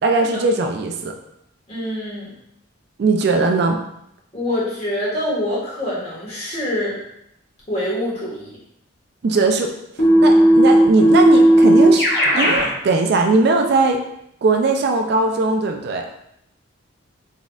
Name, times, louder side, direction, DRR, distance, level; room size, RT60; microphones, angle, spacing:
voice 1, 0.0-1.1 3.0-3.8 9.2-9.7 10.2-12.1 12.3-14.0 14.4-16.1, right 3 dB, 55° right, 4 dB, 0.3 m, -19 dB
voice 2, 1.7-2.3 4.3-7.0 7.7-8.5, left 1 dB, 30° left, -7 dB, 1.4 m, -25 dB
Keyboard (musical), 10.0-12.7, right 1 dB, 55° left, 1.3 m, -13 dB
4.1 x 3.5 x 2.3 m, 0.78 s
head